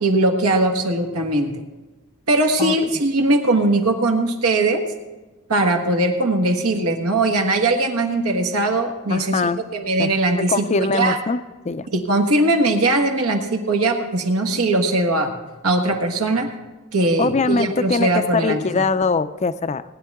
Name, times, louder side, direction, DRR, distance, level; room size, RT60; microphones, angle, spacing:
voice 1, 0.0-1.6 2.3-4.8 5.5-9.4 9.7-11.2 11.9-15.3 15.6-16.5 16.9-18.6, right 2 dB, 80° right, 4 dB, 1.5 m, -20 dB
voice 2, 9.1-9.6 10.0-10.1 10.4-11.9 17.2-19.8, left 4 dB, 30° left, 13 dB, 0.4 m, -22 dB
19.0 x 10.5 x 3.6 m, 1.2 s
head